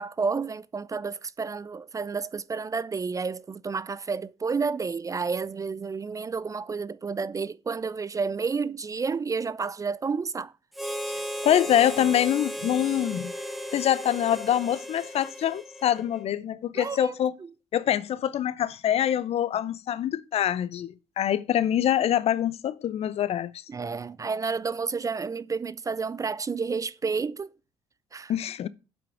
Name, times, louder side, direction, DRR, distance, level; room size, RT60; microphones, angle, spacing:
voice 1, 0.0-10.5 16.7-17.1 23.7-27.5 28.1-28.3, right 5 dB, 25° right, 0.5 m, -30 dB
Harmonica, 10.7-16.2, equal, ahead, 1.5 m, -35 dB
voice 2, 11.4-13.3 13.7-17.3 17.7-23.6 28.3-28.7, left 10 dB, 50° left, 0.7 m, -25 dB
7.9 x 5.9 x 6.2 m
hypercardioid pair, 60°, 13 cm